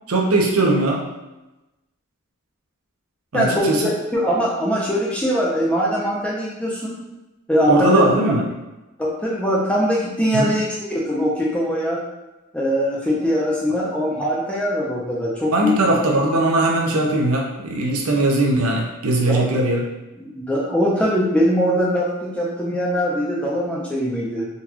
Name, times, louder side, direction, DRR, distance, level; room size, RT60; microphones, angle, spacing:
voice 1, 0.1-1.0 3.3-3.8 7.7-8.5 10.3-10.5 15.5-19.8, right 2 dB, 75° right, 0 dB, 0.6 m, -19 dB
voice 2, 3.3-7.0 7.5-8.1 9.0-12.0 12.5-15.7 19.3-19.4 20.2-22.1 22.3-24.5, equal, 5° left, -6 dB, 0.6 m, -21 dB
3.9 x 2.4 x 2.9 m, 1.0 s
head